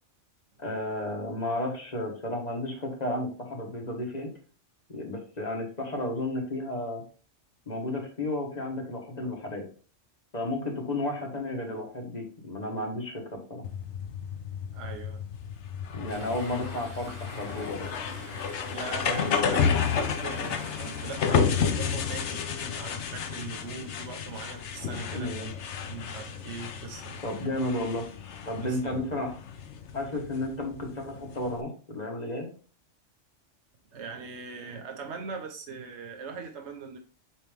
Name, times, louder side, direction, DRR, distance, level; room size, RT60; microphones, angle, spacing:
voice 1, 0.6-4.3 4.9-7.0 7.7-9.7 10.3-13.6 15.9-17.8 19.0-19.2 25.1-25.5 27.2-28.1 28.4-29.3 29.9-32.5, left 1 dB, 35° left, 1.6 m, -33 dB
sound 1, 13.6-31.6, left 6 dB, 70° left, 1.0 m, -31 dB
voice 2, 14.7-15.2 15.9-16.0 18.7-25.5 25.9-27.2 28.6-28.9 33.9-37.0, right 5 dB, 65° right, 1.2 m, -41 dB
Chatter / Stream, 16.1-21.3, right 1 dB, 85° right, 3.3 m, -46 dB
8.8 x 3.1 x 3.5 m
omnidirectional pair, 1.3 m